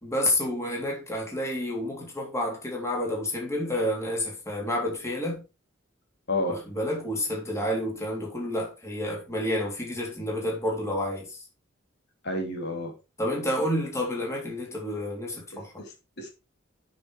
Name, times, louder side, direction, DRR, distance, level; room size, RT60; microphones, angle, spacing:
voice 1, 0.0-5.4 6.5-11.4 13.2-15.7, left 1 dB, 15° left, 3.6 m, -29 dB
voice 2, 6.3-6.6 12.2-12.9 15.5-16.3, left 2 dB, 60° left, 3.2 m, -31 dB
9.2 x 6.3 x 4.9 m
head